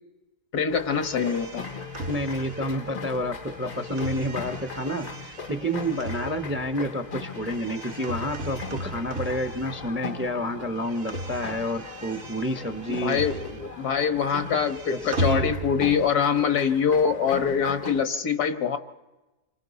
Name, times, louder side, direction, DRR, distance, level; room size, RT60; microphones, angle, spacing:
voice 1, 0.5-1.7 13.0-18.8, left 7 dB, 80° left, 7 dB, 1.7 m, -24 dB
sound 1, 0.7-18.0, left 5 dB, 45° left, 0.6 m, -39 dB
sound 2, 0.9-10.2 10.5-13.9 14.2-16.1, right 2 dB, 45° right, 0.9 m, -36 dB
voice 2, 2.1-13.2 15.0-15.5, equal, 15° right, 7 dB, 0.5 m, -29 dB
28.5 x 25.0 x 4.1 m, 1.1 s
omnidirectional pair, 1.6 m